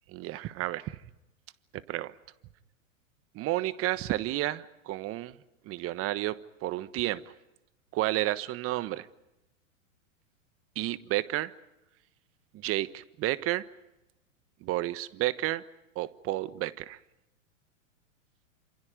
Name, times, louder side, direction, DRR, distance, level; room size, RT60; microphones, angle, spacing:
voice 1, 0.2-1.0 1.7-2.1 3.3-5.4 5.6-7.3 7.9-9.1 10.7-11.5 12.5-13.7 14.6-15.6 15.9-17.0, right 16 dB, 35° right, 15 dB, 1.3 m, -31 dB
28.5 x 27.0 x 5.1 m, 0.93 s
hypercardioid pair, 115°, 39 cm